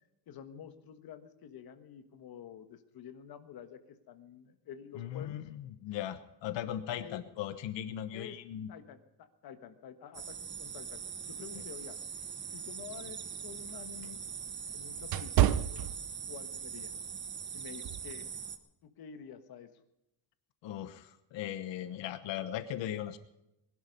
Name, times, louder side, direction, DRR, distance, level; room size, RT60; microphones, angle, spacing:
voice 1, 0.3-5.4 7.0-7.2 8.1-8.4 8.7-12.0 12.5-14.2 14.7-15.9 16.3-16.9 17.5-18.4 18.8-19.7, left 8 dB, 55° left, 9 dB, 1.5 m, -49 dB
voice 2, 4.9-8.7 11.5-11.6 20.6-23.2, left 11 dB, 85° left, 11 dB, 1.2 m, -38 dB
sound 1, 10.1-18.6, right 7 dB, 25° right, 0.9 m, -42 dB
sound 2, 12.8-16.6 17.0-17.2 17.8-18.1, right 12 dB, 55° right, 0.7 m, -31 dB
20.5 x 11.5 x 5.3 m, 0.88 s
cardioid pair, 180°, 43 cm